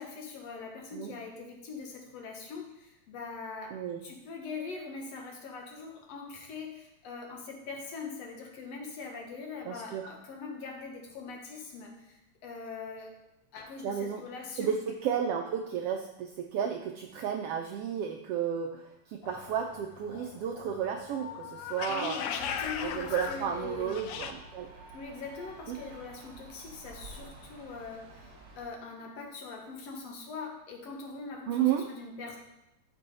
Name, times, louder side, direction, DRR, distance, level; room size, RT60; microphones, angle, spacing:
voice 1, 0.0-13.2 13.5-14.7 21.9-24.0 24.9-32.4, left 4 dB, 65° left, 1 dB, 2.3 m, -42 dB
voice 2, 9.6-10.1 13.8-14.2 14.6-22.2 22.8-24.7 25.7-25.8 31.5-31.8, right 8 dB, 80° right, 4 dB, 1.3 m, -32 dB
sound 1, 19.2-24.3, left 7 dB, 85° left, 1.2 m, -39 dB
sound 2, 22.3-28.7, right 2 dB, 35° right, 1.9 m, -50 dB
13.5 x 5.5 x 4.2 m, 0.88 s
omnidirectional pair, 3.3 m